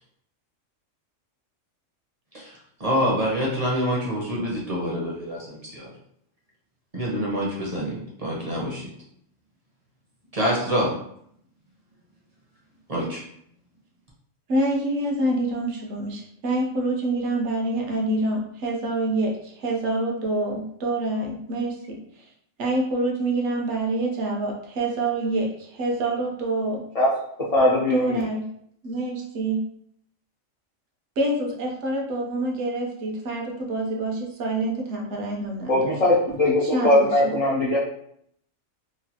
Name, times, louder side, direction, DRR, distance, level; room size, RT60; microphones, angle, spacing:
voice 1, 2.8-5.9 6.9-8.6 10.3-11.0 12.9-13.2, equal, 40° right, -4 dB, 0.6 m, -26 dB
voice 2, 14.5-22.0 22.6-26.8 27.9-28.4 28.8-29.6 31.2-35.8 36.6-37.3, right 2 dB, 65° right, 0 dB, 1.0 m, -26 dB
voice 3, 27.5-28.2 35.7-37.8, left 1 dB, 60° left, -5 dB, 0.4 m, -20 dB
3.1 x 2.3 x 2.8 m, 0.69 s
omnidirectional pair, 1.3 m